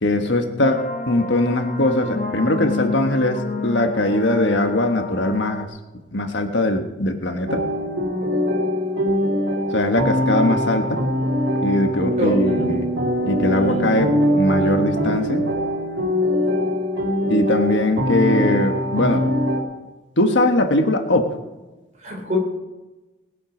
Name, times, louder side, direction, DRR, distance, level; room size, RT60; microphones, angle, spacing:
voice 1, 0.0-5.7 6.1-7.6 9.7-11.0 11.6-12.9 13.2-15.4 17.3-19.2 20.2-21.3, left 1 dB, 70° left, 6 dB, 1.3 m, -20 dB
sound 1, 0.6-5.6, left 3 dB, 40° left, 1.1 m, -29 dB
sound 2, 7.5-19.6, equal, 75° right, 2.5 m, -22 dB
voice 2, 12.2-12.7 13.6-13.8 22.0-22.4, right 1 dB, 40° right, 0 dB, 3.6 m, -26 dB
20.0 x 8.5 x 5.1 m, 1.1 s
head